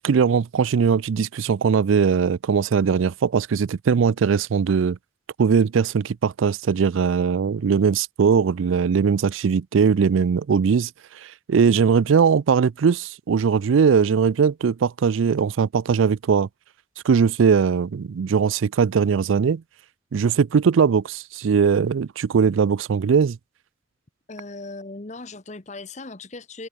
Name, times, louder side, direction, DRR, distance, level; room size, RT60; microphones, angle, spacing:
voice 1, 0.0-5.0 5.4-10.9 11.2-16.5 17.0-19.6 20.1-23.4, right 6 dB, 80° right, 0.4 m, -20 dB
voice 2, 24.3-26.7, left 3 dB, 35° left, 1.0 m, -38 dB
head